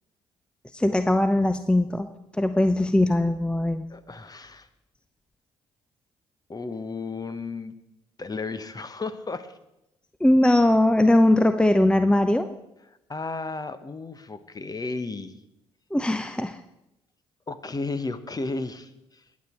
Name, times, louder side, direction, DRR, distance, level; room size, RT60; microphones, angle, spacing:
voice 1, 0.7-2.1 2.3-3.8 10.2-12.5 15.9-16.6, left 1 dB, 5° left, 10 dB, 0.8 m, -20 dB
voice 2, 3.9-4.7 6.5-7.8 8.2-9.5 13.1-15.3 17.5-19.2, left 3 dB, 25° left, 13 dB, 1.2 m, -33 dB
20.5 x 8.6 x 4.6 m, 0.87 s
hypercardioid pair, 50°, 14 cm